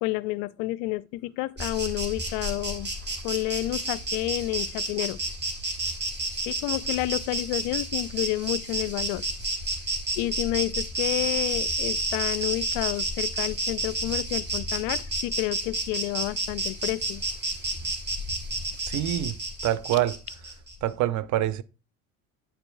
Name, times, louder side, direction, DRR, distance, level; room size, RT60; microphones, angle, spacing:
voice 1, 0.0-2.9 3.2-5.2 6.5-9.2 10.2-17.2, left 18 dB, 55° left, 0.5 m, -30 dB
Insect, 1.6-20.7, right 2 dB, 25° right, 1.8 m, -31 dB
voice 2, 18.8-19.4 19.6-20.2 20.8-21.6, right 13 dB, 40° right, 0.5 m, -25 dB
8.8 x 6.7 x 2.2 m
hypercardioid pair, 70°, 45 cm